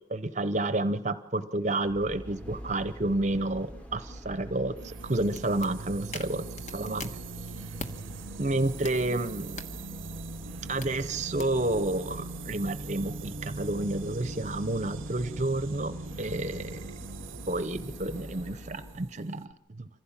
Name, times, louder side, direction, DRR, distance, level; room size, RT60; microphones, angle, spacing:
voice 1, 0.1-6.4 6.7-7.1 8.4-9.6 10.7-16.8 17.5-19.5 19.8-19.9, right 2 dB, 35° right, 12 dB, 0.8 m, -30 dB
sound 1, 1.8-19.1 19.5-19.6, equal, 5° left, 1.1 m, -45 dB
sound 2, 4.8-19.5, right 3 dB, 90° right, 0.7 m, -42 dB
sound 3, 4.9-8.0 8.4-11.6, left 2 dB, 35° left, 1.3 m, -46 dB
25.5 x 15.5 x 7.4 m, 0.76 s
head